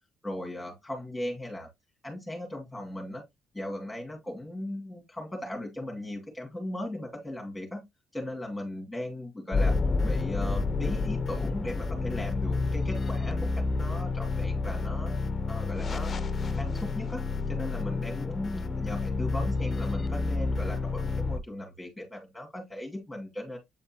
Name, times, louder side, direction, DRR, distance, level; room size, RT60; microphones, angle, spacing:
voice 1, 0.2-1.7 2.0-3.2 3.5-7.8 8.1-9.7 10.0-15.2 15.5-16.1 16.4-17.2 17.5-23.6, left 1 dB, 5° left, 2.6 m, -37 dB
sound 1, 9.5-21.4, left 3 dB, 40° left, 0.7 m, -29 dB
8.1 x 4.3 x 2.9 m
cardioid pair, 90°, 0 cm